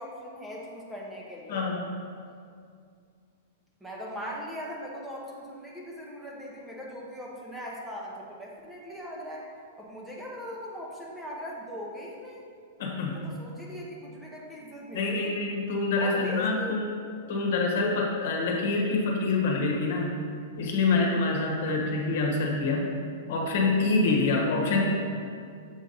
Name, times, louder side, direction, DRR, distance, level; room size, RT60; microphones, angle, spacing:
voice 1, 0.0-1.7 3.8-9.4 9.8-12.5 13.0-15.3 16.0-16.8, equal, 5° right, -4 dB, 0.7 m, -39 dB
voice 2, 1.5-1.9 12.8-13.3 14.9-16.9 17.3-20.2 20.6-22.9 23.3-24.9, left 3 dB, 65° left, 0 dB, 1.1 m, -26 dB
7.0 x 2.7 x 5.4 m, 2.2 s
hypercardioid pair, 145°, 0 cm